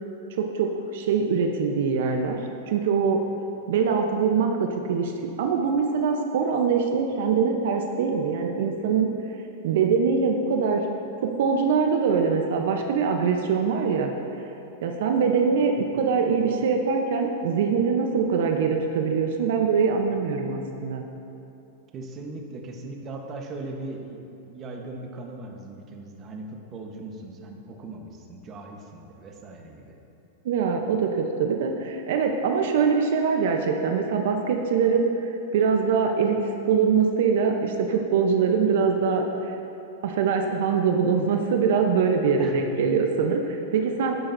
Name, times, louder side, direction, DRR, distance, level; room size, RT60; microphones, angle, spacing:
voice 1, 0.3-2.4 2.7-3.2 3.7-5.1 5.4-9.1 9.6-10.9 11.2-14.1 14.8-21.0 30.4-39.5 40.0-44.2, right 5 dB, 70° right, 3 dB, 0.8 m, -23 dB
voice 2, 21.9-30.0 42.4-42.6, right 2 dB, 30° right, 2 dB, 1.1 m, -39 dB
12.0 x 10.5 x 2.7 m, 2.9 s
supercardioid pair, 135°, 0 cm